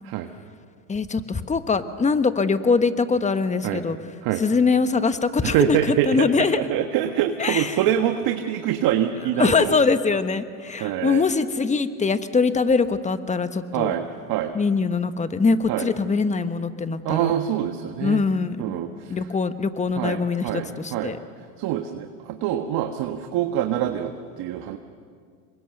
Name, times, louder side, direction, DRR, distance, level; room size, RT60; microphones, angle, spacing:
voice 1, 0.9-4.0 4.4-6.6 7.4-7.8 9.4-13.9 14.5-17.3 18.0-18.6 19.1-21.2, left 4 dB, 15° left, 11 dB, 1.2 m, -22 dB
voice 2, 5.4-6.3 6.5-9.7 10.8-11.2 13.7-14.6 15.7-15.9 17.0-18.2 18.6-19.2 20.0-21.1 21.6-24.8, right 11 dB, 55° right, 6 dB, 1.5 m, -25 dB
27.5 x 23.5 x 6.7 m, 2.1 s
hypercardioid pair, 95°, 44 cm